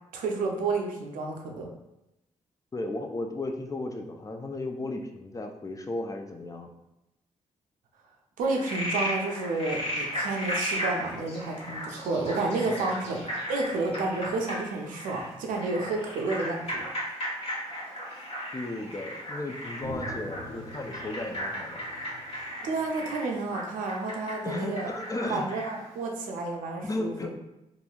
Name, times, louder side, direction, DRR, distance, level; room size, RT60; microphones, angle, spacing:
voice 1, 0.1-1.7 8.4-16.9 22.6-24.9 25.3-27.1, right 3 dB, 85° right, 2 dB, 0.5 m, -30 dB
voice 2, 2.7-6.7 12.6-12.9 18.5-21.9 24.4-25.5 26.8-27.3, left 2 dB, 25° left, 4 dB, 0.4 m, -35 dB
Frog, 8.4-25.9, equal, 45° left, 1.1 m, -36 dB
sound 1, 19.8-24.5, left 1 dB, 65° left, 0.8 m, -44 dB
2.9 x 2.5 x 2.3 m, 0.91 s
supercardioid pair, 60°, 14 cm